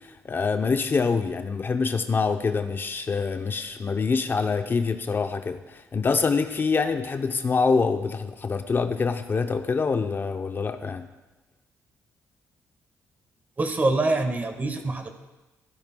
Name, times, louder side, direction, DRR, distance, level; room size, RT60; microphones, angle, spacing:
voice 1, 0.0-11.1, left 4 dB, 35° left, 7 dB, 0.6 m, -25 dB
voice 2, 13.6-15.1, right 2 dB, 30° right, 7 dB, 1.3 m, -25 dB
14.0 x 11.5 x 2.2 m, 1.1 s
cardioid pair, 75°, 6 cm